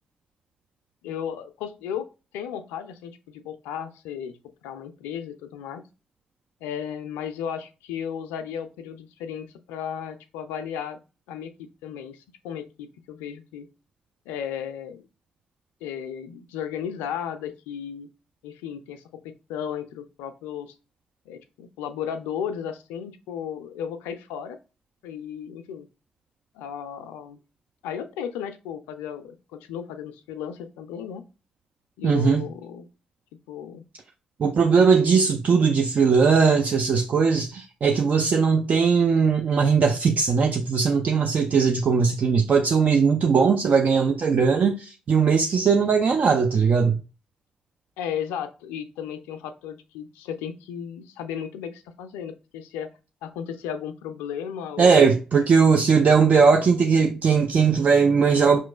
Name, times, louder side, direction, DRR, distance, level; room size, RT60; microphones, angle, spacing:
voice 1, 1.0-2.1 2.3-4.3 4.6-5.9 6.6-11.0 11.3-13.7 14.3-15.1 15.8-18.1 18.4-20.7 21.3-24.6 25.0-25.9 26.5-27.4 27.8-31.3 32.0-32.9 33.5-33.8 48.0-52.9 53.2-55.2, left 8 dB, 80° left, 0.4 m, -34 dB
voice 2, 32.0-32.4 34.4-47.0 54.8-58.6, right 5 dB, 50° right, 0.4 m, -19 dB
5.0 x 3.0 x 2.2 m
hypercardioid pair, 40°, 3 cm